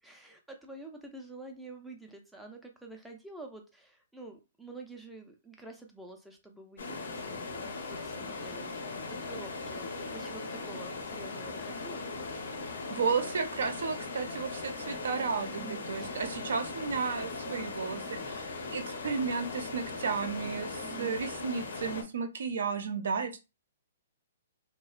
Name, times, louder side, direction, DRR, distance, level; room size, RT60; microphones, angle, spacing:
voice 1, 0.0-12.1 15.4-16.2 20.8-21.2, right 2 dB, ahead, 2 dB, 0.4 m, -48 dB
sound 1, 6.8-22.0, left 3 dB, 70° left, 0.7 m, -39 dB
voice 2, 12.9-23.4, right 5 dB, 75° right, 7 dB, 0.5 m, -33 dB
2.8 x 2.1 x 2.4 m, 0.27 s
hypercardioid pair, 165°, 0 cm